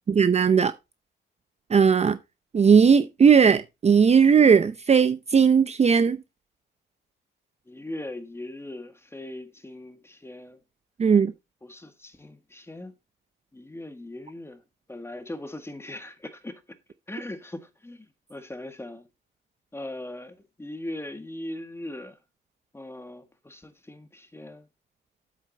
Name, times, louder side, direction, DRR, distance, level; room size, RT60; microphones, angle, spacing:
voice 1, 0.2-0.7 1.7-2.2 2.5-6.2 11.0-11.3, right 6 dB, 35° right, 0.7 m, -18 dB
voice 2, 7.7-10.6 11.6-12.9 13.5-14.6 14.9-16.6 17.1-19.1 19.7-22.2 22.7-24.7, left 1 dB, 10° left, 1.6 m, -39 dB
8.1 x 7.7 x 4.0 m
cardioid pair, 90°, 20 cm